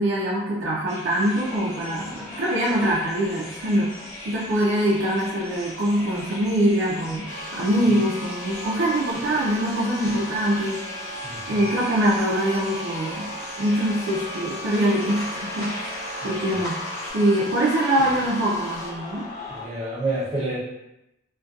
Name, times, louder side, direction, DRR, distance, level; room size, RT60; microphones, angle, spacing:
voice 1, 0.0-3.9 4.3-10.8 11.5-13.3 13.6-16.8 17.1-19.2, right 1 dB, 90° right, -5 dB, 0.4 m, -23 dB
sound 1, 0.9-17.1, left 1 dB, 40° left, 1.1 m, -41 dB
sound 2, 1.3-19.7, left 2 dB, 20° left, 1.0 m, -40 dB
sound 3, 7.3-18.9, equal, 80° left, 0.5 m, -36 dB
voice 2, 11.2-11.7 16.2-16.6 19.5-20.6, right 2 dB, 35° right, -7 dB, 0.5 m, -29 dB
2.6 x 2.2 x 2.3 m, 0.87 s
head